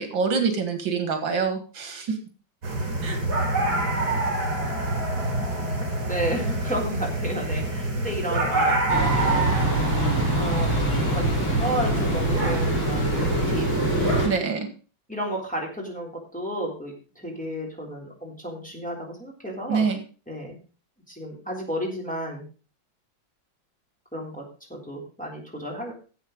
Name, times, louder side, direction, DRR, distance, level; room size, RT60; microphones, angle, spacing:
voice 1, 0.0-2.2 3.0-3.2 14.2-14.7 19.7-20.0, right 5 dB, 75° right, 7 dB, 2.4 m, -25 dB
sound 1, 2.6-14.3, right 2 dB, 55° right, 3.7 m, -26 dB
voice 2, 6.1-9.7 10.3-13.8 15.1-19.9 20.3-20.6 21.1-22.5 24.1-25.9, equal, 5° left, -2 dB, 3.7 m, -32 dB
sound 2, 8.9-14.3, right 1 dB, 80° left, 5.6 m, -25 dB
12.0 x 7.9 x 5.2 m, 0.36 s
omnidirectional pair, 2.1 m